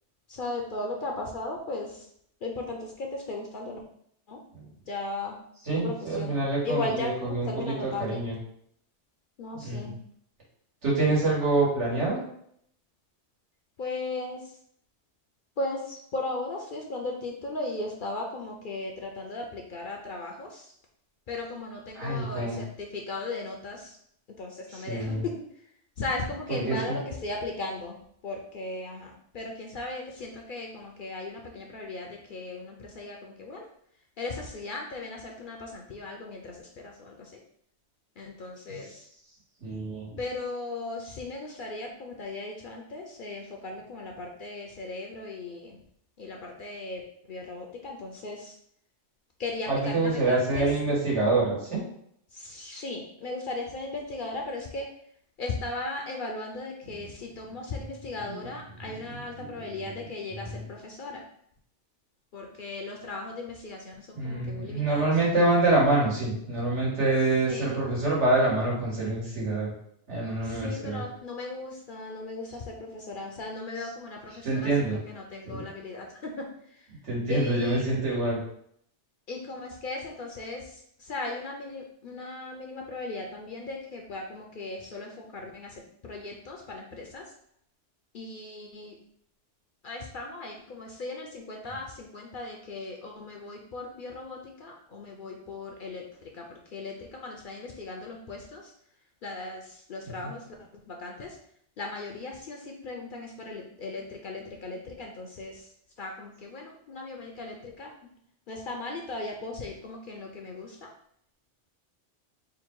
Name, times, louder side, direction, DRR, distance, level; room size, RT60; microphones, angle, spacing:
voice 1, 0.3-1.9 2.4-3.8 4.3-4.4 4.9-5.4 5.8-6.4 6.6-8.3 9.4-10.0 13.8-14.4 15.6-20.6 21.3-23.9 24.4-25.3 26.0-28.0 28.2-33.6 34.2-36.5 36.8-37.1 38.2-38.9 40.2-45.8 46.2-47.0 47.3-48.5 49.4-50.7 52.4-54.9 55.4-61.2 62.3-65.1 67.5-67.7 70.5-76.1 76.4-76.5 77.3-77.9 79.3-80.6 81.1-85.7 86.0-87.2 88.1-88.9 89.8-96.0 96.4-96.5 96.7-96.9 97.2-98.6 99.2-99.6 99.9-100.4 100.9-101.3 101.8-105.5 106.0-107.9 108.5-110.7, left 2 dB, 55° left, 0 dB, 0.6 m, -37 dB
voice 2, 5.6-8.4 9.6-9.9 10.8-12.2 21.9-22.6 24.7-25.2 26.5-27.0 38.7-38.8 39.6-40.2 49.7-51.8 56.8-57.1 58.2-58.5 58.8-60.1 60.4-60.6 64.1-69.7 70.1-71.0 73.8-73.9 74.4-75.0 75.5-75.6 77.1-78.4 100.2-100.3, right 2 dB, 75° right, -5 dB, 1.9 m, -26 dB
3.8 x 2.2 x 4.5 m, 0.68 s
omnidirectional pair, 1.2 m